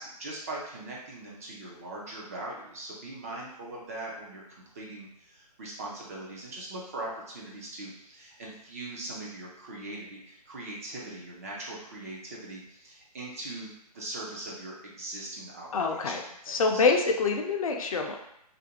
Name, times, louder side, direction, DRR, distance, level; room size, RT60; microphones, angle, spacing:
voice 1, 0.0-4.4 4.7-13.7 13.9-16.1 16.7-16.8, right 2 dB, 25° right, -4 dB, 0.4 m, -40 dB
voice 2, 15.7-18.2, left 4 dB, 60° left, 3 dB, 0.4 m, -26 dB
2.4 x 2.1 x 2.8 m, 0.77 s
hypercardioid pair, 155°, 21 cm